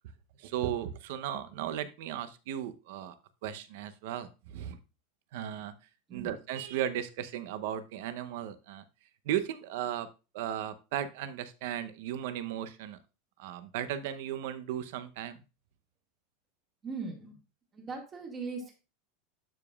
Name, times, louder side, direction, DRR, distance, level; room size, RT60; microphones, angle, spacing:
voice 1, 0.4-3.1 3.4-4.8 5.3-5.7 6.1-8.8 9.2-10.1 10.3-13.0 13.4-15.4, right 10 dB, 60° right, 12 dB, 0.7 m, -36 dB
voice 2, 16.8-17.4 17.7-18.7, right 4 dB, 20° right, 2 dB, 1.8 m, -39 dB
12.0 x 5.0 x 2.4 m, 0.30 s
supercardioid pair, 170°, 0 cm